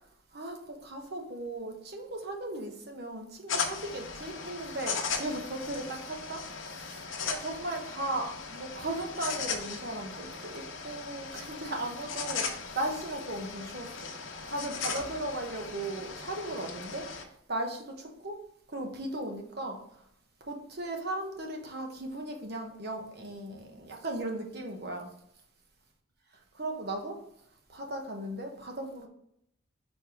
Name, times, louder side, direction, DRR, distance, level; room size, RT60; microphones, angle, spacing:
voice 1, 0.3-6.4 6.7-14.1 14.5-17.1 17.5-18.4 18.7-19.8 20.4-25.1 26.5-27.2 27.7-29.1, right 1 dB, 50° right, 3 dB, 1.0 m, -37 dB
sound 1, 3.5-17.2, left 5 dB, 70° left, 0.9 m, -38 dB
4.5 x 4.4 x 4.9 m, 0.74 s
head